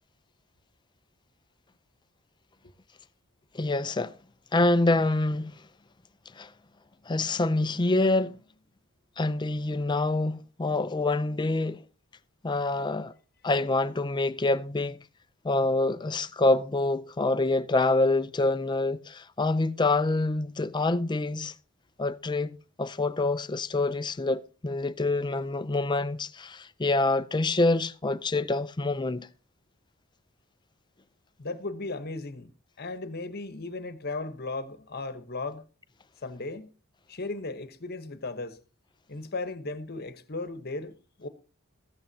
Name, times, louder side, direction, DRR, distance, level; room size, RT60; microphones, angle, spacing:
voice 1, 3.5-4.1 4.5-5.5 6.4-6.5 7.1-8.4 9.2-11.8 12.4-13.1 13.4-15.0 15.4-21.5 22.0-29.3, left 2 dB, 20° left, 0.5 m, -26 dB
voice 2, 31.4-32.5 32.8-35.7 36.2-36.7 37.1-38.6 39.1-41.3, left 3 dB, 45° left, 1.1 m, -36 dB
14.0 x 13.5 x 2.8 m
head